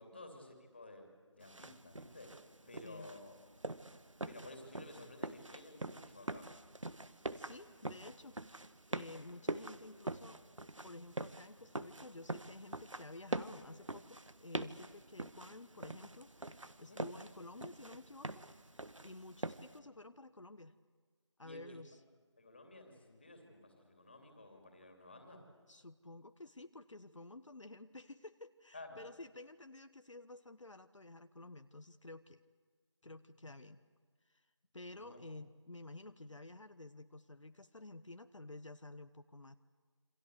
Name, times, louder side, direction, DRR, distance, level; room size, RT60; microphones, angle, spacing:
voice 1, 0.0-2.3 2.7-3.3 4.3-6.5 16.9-17.0 21.4-21.8 22.4-25.4 28.7-29.0 35.0-35.2, left 2 dB, 20° left, 4 dB, 2.9 m, -54 dB
sound 1, 1.4-19.8, right 2 dB, 85° right, 1.6 m, -45 dB
voice 2, 7.3-10.4 10.8-18.4 19.0-20.7 21.4-22.0 25.7-32.4 33.0-33.8 34.2-34.5 34.7-39.6, left 2 dB, 75° left, 9 dB, 1.2 m, -52 dB
27.5 x 25.5 x 8.2 m, 1.5 s
figure-of-eight pair, 175°, 16 cm